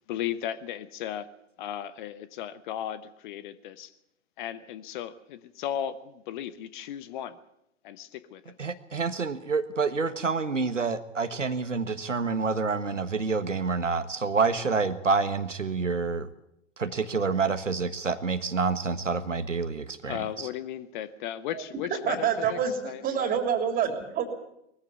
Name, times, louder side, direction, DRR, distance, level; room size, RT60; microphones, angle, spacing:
voice 1, 0.1-1.3 1.6-3.9 4.4-7.4 7.8-8.5 20.0-23.3, left 10 dB, 40° left, 14 dB, 1.1 m, -36 dB
voice 2, 8.6-16.3 16.8-20.5, right 4 dB, 85° right, 10 dB, 1.5 m, -28 dB
voice 3, 22.0-24.3, right 7 dB, 25° right, 7 dB, 3.4 m, -27 dB
20.5 x 14.5 x 9.4 m, 0.80 s
figure-of-eight pair, 110°, 36 cm